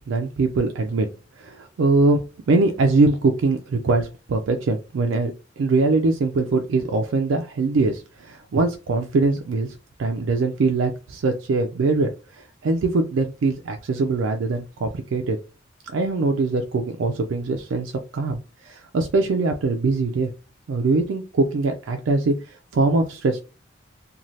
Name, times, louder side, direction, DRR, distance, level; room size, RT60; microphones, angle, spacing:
voice 1, 0.1-1.1 1.4-2.2 2.5-5.3 5.6-12.1 12.4-15.4 15.9-20.3 20.7-22.3 22.7-23.4, right 3 dB, 80° right, 4 dB, 0.4 m, -22 dB
3.1 x 2.2 x 2.6 m, 0.32 s
head